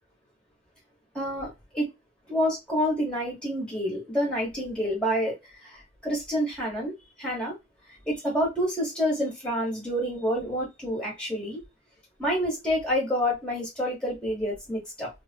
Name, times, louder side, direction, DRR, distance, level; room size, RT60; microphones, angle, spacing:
voice 1, 1.1-1.9 2.3-5.3 5.6-7.5 8.0-11.6 12.2-15.1, equal, 5° left, -3 dB, 1.8 m, -28 dB
3.3 x 2.1 x 2.9 m, 0.21 s
head